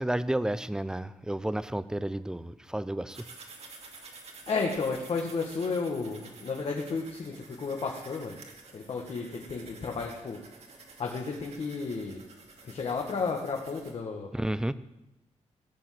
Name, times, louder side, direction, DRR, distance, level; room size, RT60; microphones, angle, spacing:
voice 1, 0.0-3.2 14.3-14.7, right 1 dB, 5° right, 15 dB, 0.5 m, -31 dB
sound 1, 3.1-13.9, right 4 dB, 60° right, 2.4 m, -50 dB
voice 2, 4.5-8.4 8.7-10.4 11.0-12.2 12.6-14.3, left 4 dB, 50° left, 0 dB, 1.7 m, -32 dB
17.0 x 7.4 x 7.7 m, 0.94 s
wide cardioid pair, 145°, 12 cm